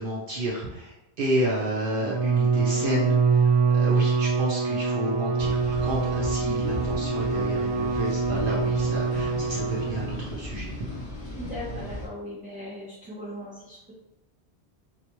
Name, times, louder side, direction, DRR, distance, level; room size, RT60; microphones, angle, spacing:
voice 1, 0.0-10.8, right 1 dB, 60° right, -4 dB, 0.7 m, -31 dB
Bowed string instrument, 2.0-10.3, right 5 dB, 85° right, 1.0 m, -25 dB
sound 1, 5.4-12.1, left 2 dB, 25° left, 1.4 m, -36 dB
voice 2, 11.3-13.8, equal, 10° right, -8 dB, 0.6 m, -38 dB
3.9 x 2.3 x 2.9 m, 0.94 s
omnidirectional pair, 1.1 m